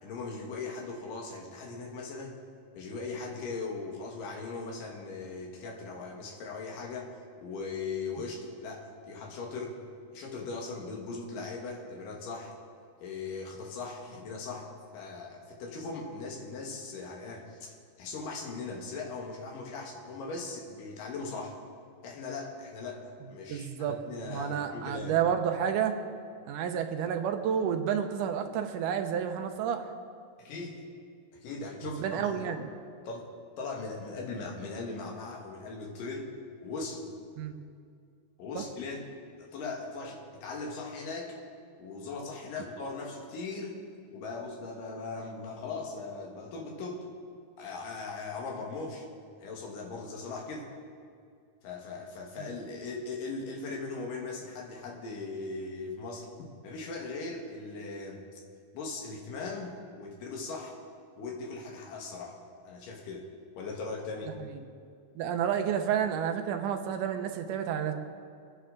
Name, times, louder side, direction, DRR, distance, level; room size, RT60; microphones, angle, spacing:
voice 1, 0.0-2.4 2.7-9.8 10.1-12.5 13.0-21.6 22.0-25.2 30.4-30.8 31.3-32.6 33.0-33.3 33.6-36.3 36.6-37.1 38.4-39.1 39.3-41.4 41.8-43.8 44.1-47.1 47.6-49.1 49.4-50.7 51.6-58.4 58.7-60.7 61.2-62.4 62.6-63.3 63.6-64.4, left 3 dB, 90° left, 0 dB, 3.3 m, -39 dB
voice 2, 23.5-23.9 24.3-26.0 26.5-29.9 32.0-32.7 37.4-37.5 38.6-38.7 52.4-52.5 64.4-64.5 65.2-67.9, right 8 dB, 80° right, 6 dB, 2.4 m, -30 dB
25.0 x 9.9 x 3.8 m, 2.3 s
omnidirectional pair, 3.7 m